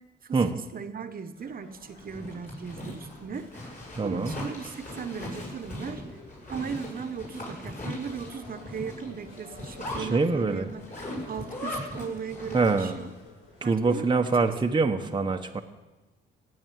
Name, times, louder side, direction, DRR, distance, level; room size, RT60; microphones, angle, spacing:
voice 1, 0.2-6.0 6.5-10.8 11.3-13.1 13.6-14.2, right 6 dB, 45° right, 9 dB, 1.2 m, -37 dB
sound 1, 1.3-14.6, left 2 dB, 90° left, 6.5 m, -53 dB
Zipper (clothing), 1.9-13.1, left 1 dB, 40° left, 6.8 m, -39 dB
voice 2, 3.9-4.4 9.9-10.7 12.5-13.0 13.6-15.6, right 4 dB, 25° right, 3 dB, 1.0 m, -25 dB
16.0 x 7.7 x 9.3 m, 1.1 s
cardioid pair, 90°, 20 cm